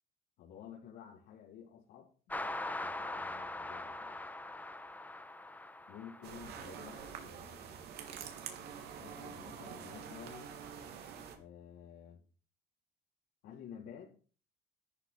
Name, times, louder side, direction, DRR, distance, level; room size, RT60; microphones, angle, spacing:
voice 1, 0.4-4.2 5.9-7.9 9.0-10.5 11.3-12.2 13.4-14.1, left 8 dB, 85° left, -5 dB, 4.2 m, -52 dB
sound 1, 2.3-7.1, left 2 dB, 10° left, 1.3 m, -42 dB
sound 2, 6.2-11.4, right 7 dB, 75° right, 3.2 m, -47 dB
13.5 x 11.0 x 4.5 m, 0.38 s
cardioid pair, 110°, 17 cm